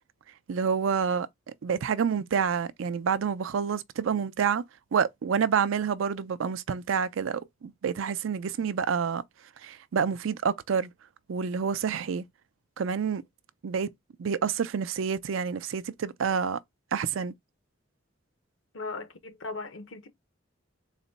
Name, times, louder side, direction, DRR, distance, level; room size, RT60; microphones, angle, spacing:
voice 1, 0.5-1.3 1.6-4.6 4.9-9.2 9.6-10.9 11.3-12.2 12.8-13.2 13.6-13.9 14.2-16.6 16.9-17.3, right 6 dB, 90° right, 0.4 m, -28 dB
voice 2, 18.7-20.1, left 3 dB, 85° left, 0.9 m, -38 dB
4.0 x 2.1 x 4.0 m
head